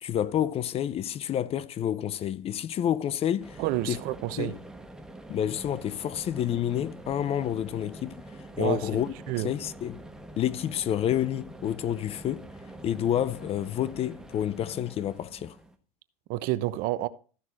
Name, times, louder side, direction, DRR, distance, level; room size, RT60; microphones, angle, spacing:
voice 1, 0.0-3.6 3.9-4.0 4.4-4.5 5.3-8.1 8.6-9.1 9.4-10.0 10.4-12.5 12.8-15.6, left 10 dB, 35° left, 0.6 m, -29 dB
sound 1, 3.4-15.7, right 1 dB, 5° right, 1.5 m, -45 dB
voice 2, 3.6-4.5 8.6-9.5 16.3-17.1, right 16 dB, 55° right, 1.0 m, -30 dB
14.5 x 6.2 x 4.3 m
hypercardioid pair, 105°, 18 cm